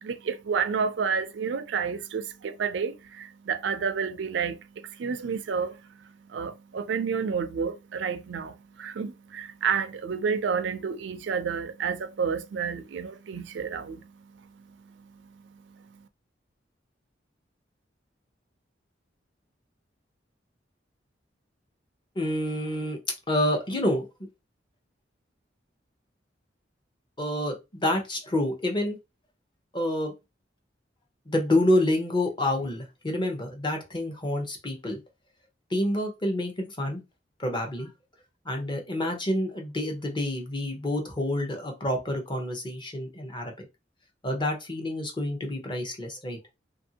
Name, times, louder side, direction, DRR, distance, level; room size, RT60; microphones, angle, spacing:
voice 1, 0.0-5.8 6.3-14.1, right 6 dB, 75° right, 0.4 m, -30 dB
voice 2, 22.2-23.0 23.3-24.1 27.2-29.0 29.7-30.1 31.3-35.0 35.7-37.0 37.4-37.9 38.5-43.7 44.2-46.4, left 1 dB, 25° left, 0.7 m, -28 dB
2.8 x 2.6 x 2.7 m
head